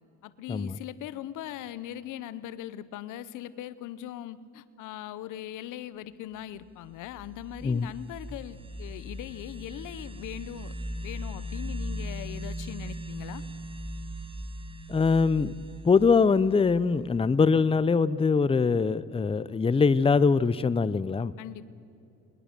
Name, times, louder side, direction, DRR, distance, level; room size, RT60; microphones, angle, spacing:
voice 1, 0.2-10.7 11.0-13.4 21.4-21.7, left 12 dB, 90° left, 0.8 m, -40 dB
sound 1, 6.8-17.4, equal, 20° right, 1.1 m, -39 dB
voice 2, 14.9-15.5 15.8-21.3, left 5 dB, 20° left, 0.6 m, -23 dB
20.5 x 20.5 x 6.7 m
cardioid pair, 90°, 30 cm